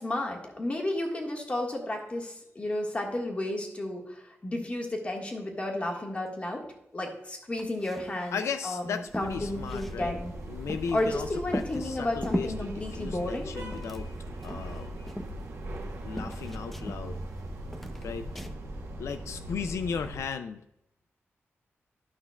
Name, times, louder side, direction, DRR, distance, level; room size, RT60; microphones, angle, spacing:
voice 1, 0.0-6.7 6.9-10.3 10.9-13.6, left 1 dB, 25° left, 1 dB, 1.6 m, -32 dB
sound 1, 7.5-8.2 8.5-8.6 8.8-11.1 11.5-12.6 13.2-14.2 14.4-15.9 16.2-17.4 17.7-18.6, equal, 5° left, 0.5 m, -38 dB
voice 2, 8.3-10.1 10.5-11.3 11.5-14.1 14.4-14.9 16.0-17.2 18.0-18.3 19.0-20.6, left 6 dB, 90° left, 9 dB, 0.4 m, -36 dB
sound 2, 9.1-20.3, right 1 dB, 75° right, 1.2 m, -39 dB
12.0 x 5.8 x 2.3 m, 0.83 s
wide cardioid pair, 125°, 5 cm